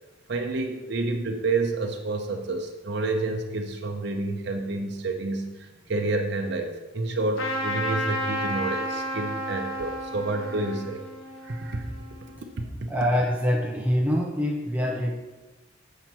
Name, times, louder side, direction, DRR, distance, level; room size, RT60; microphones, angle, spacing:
voice 1, 0.3-11.0 11.4-11.9 12.6-12.7, right 2 dB, 55° right, 3 dB, 0.7 m, -29 dB
Trumpet, 7.3-12.4, equal, 75° left, 1.1 m, -32 dB
voice 2, 12.9-15.1, equal, 10° right, -1 dB, 0.6 m, -24 dB
7.8 x 5.6 x 4.4 m, 1.1 s
head